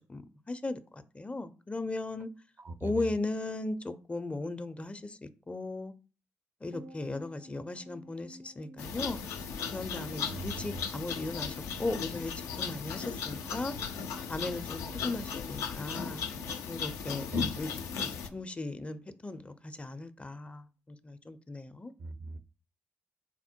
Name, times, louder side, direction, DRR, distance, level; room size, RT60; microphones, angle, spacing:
voice 1, 0.0-2.3 2.8-5.9 6.6-9.3 9.7-12.3 12.6-13.7 14.3-16.2 16.7-17.7 18.0-21.9, left 2 dB, 25° left, 0.4 m, -37 dB
voice 2, 2.6-3.0 10.3-10.8 17.3-17.5 22.0-22.4, right 3 dB, 55° right, 0.5 m, -40 dB
sound 1, 6.7-19.2 19.5-19.6, equal, 70° right, 0.8 m, -53 dB
sound 2, 8.8-18.3, left 6 dB, 85° left, 0.4 m, -36 dB
4.2 x 2.1 x 4.3 m
supercardioid pair, 45°, 5 cm